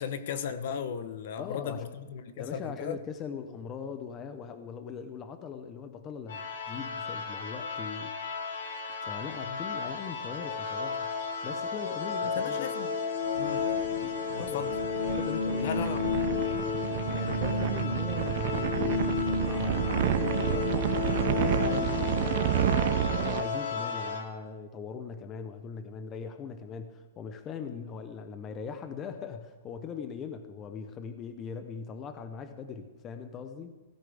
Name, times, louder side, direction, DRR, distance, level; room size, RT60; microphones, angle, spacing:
voice 1, 0.0-3.0 9.4-9.6 12.3-13.0 13.4-13.7 14.4-14.7 15.6-16.2, left 7 dB, 45° left, 0.9 m, -36 dB
voice 2, 1.3-1.9 2.4-8.3 9.0-12.7 14.0-14.6 15.1-15.9 17.1-33.7, left 6 dB, 20° left, 0.7 m, -40 dB
sound 1, 6.3-24.2, left 4 dB, 65° left, 4.7 m, -32 dB
sound 2, 13.4-23.4, right 12 dB, 40° right, 0.5 m, -30 dB
16.5 x 14.0 x 3.5 m
hypercardioid pair, 165°, 0 cm